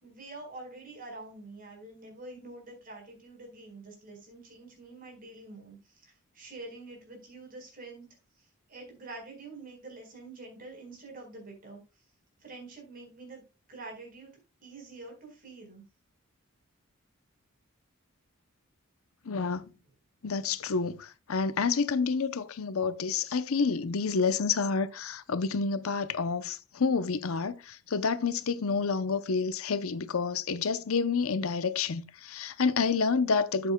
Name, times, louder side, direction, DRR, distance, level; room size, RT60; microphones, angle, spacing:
voice 1, 0.0-5.8 6.0-8.1 8.7-11.8 12.4-13.4 13.7-14.3 14.6-15.8, right 2 dB, 40° right, 4.5 m, -46 dB
voice 2, 19.3-19.6 20.2-33.7, left 5 dB, 75° left, 0.7 m, -29 dB
13.0 x 7.8 x 2.2 m
head